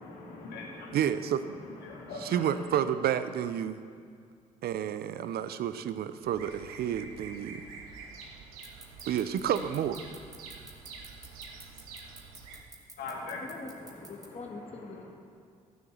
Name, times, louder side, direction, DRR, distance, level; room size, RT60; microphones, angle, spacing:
voice 1, 0.0-1.0 1.5-2.7 13.0-13.9, left 3 dB, 70° left, -1 dB, 2.4 m, -41 dB
voice 2, 0.9-1.6 2.2-3.8 4.6-7.6 9.1-10.0, right 9 dB, 65° right, 12 dB, 0.7 m, -30 dB
Bird vocalization bird call bird song, 6.2-12.6, right 5 dB, 85° right, 1.1 m, -47 dB
sound 1, 8.6-14.3, right 2 dB, 20° right, 2.5 m, -48 dB
voice 3, 13.4-15.1, left 3 dB, 35° left, 1 dB, 1.7 m, -44 dB
12.5 x 7.2 x 7.8 m, 2.2 s
hypercardioid pair, 50°, 17 cm